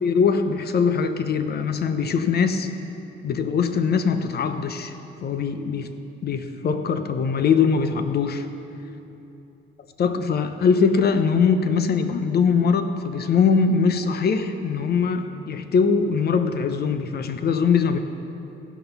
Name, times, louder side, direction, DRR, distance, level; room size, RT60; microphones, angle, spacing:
voice 1, 0.0-2.7 3.2-4.9 5.2-5.9 6.2-8.5 10.0-18.0, left 5 dB, 55° left, 8 dB, 0.8 m, -22 dB
15.0 x 6.0 x 5.5 m, 2.9 s
cardioid pair, 90°, 20 cm